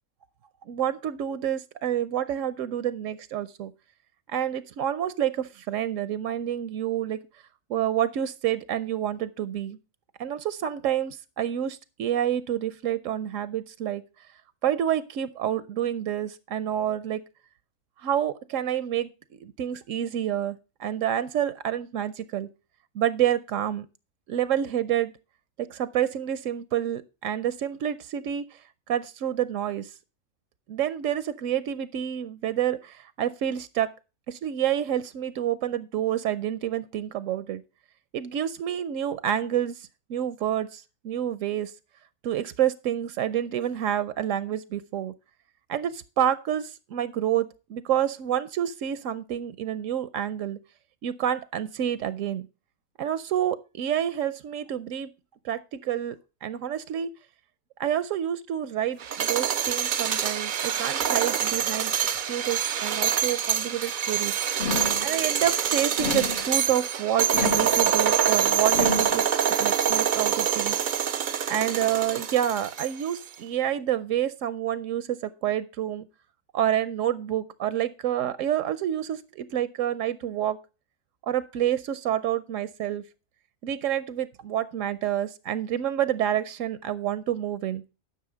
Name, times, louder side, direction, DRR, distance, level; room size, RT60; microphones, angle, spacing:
voice 1, 0.7-3.7 4.3-7.2 7.7-9.8 10.2-14.0 14.6-17.2 18.0-19.1 19.4-22.5 22.9-23.9 24.3-25.1 25.6-28.6 28.9-29.9 30.7-33.9 34.3-37.6 38.1-41.7 42.2-45.1 45.7-50.6 51.0-52.5 53.0-55.1 55.4-57.1 57.8-64.3 65.0-70.8 71.5-76.1 76.5-80.6 81.2-83.0 83.6-87.8, right 10 dB, 80° right, 15 dB, 1.0 m, -28 dB
sound 1, 59.0-73.1, right 8 dB, 50° right, 0.6 m, -25 dB
sound 2, 64.6-65.1 66.0-66.5 67.3-67.8 68.7-69.2, left 6 dB, 50° left, 0.8 m, -31 dB
10.5 x 6.1 x 5.0 m, 0.32 s
omnidirectional pair, 1.3 m